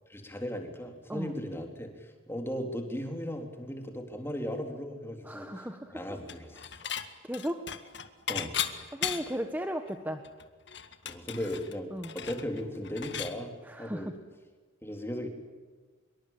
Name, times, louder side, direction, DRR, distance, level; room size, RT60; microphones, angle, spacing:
voice 1, 0.1-5.7 5.9-6.7 8.3-8.6 11.0-14.1 14.8-15.3, equal, 10° left, 4 dB, 3.6 m, -37 dB
voice 2, 5.2-6.2 7.2-7.7 8.9-10.2 11.9-12.1 13.6-14.1, equal, 10° right, 6 dB, 1.3 m, -36 dB
Dishes pots and pans / Chink clink, 6.3-7.1 7.3-9.5 9.9-10.0 10.2-13.4, left 9 dB, 55° left, 1.9 m, -36 dB
25.5 x 23.5 x 8.8 m, 1.4 s
head